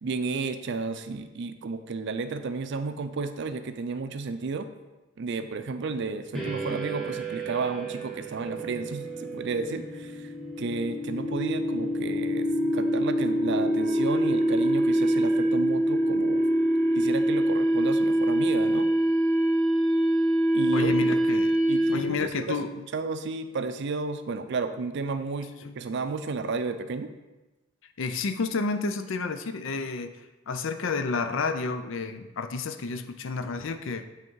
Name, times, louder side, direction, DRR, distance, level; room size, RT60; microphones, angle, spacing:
voice 1, 0.0-4.7 5.2-16.5 16.9-18.9 20.5-21.1 21.7-22.7 22.9-27.1, right 4 dB, 60° right, 10 dB, 0.4 m, -32 dB
sound 1, 6.3-22.3, right 1 dB, ahead, 1.2 m, -25 dB
voice 2, 20.7-21.5 21.9-22.8 25.6-25.8 28.0-30.1 30.5-34.1, left 4 dB, 65° left, 9 dB, 0.5 m, -30 dB
7.8 x 3.6 x 4.6 m, 1.1 s
head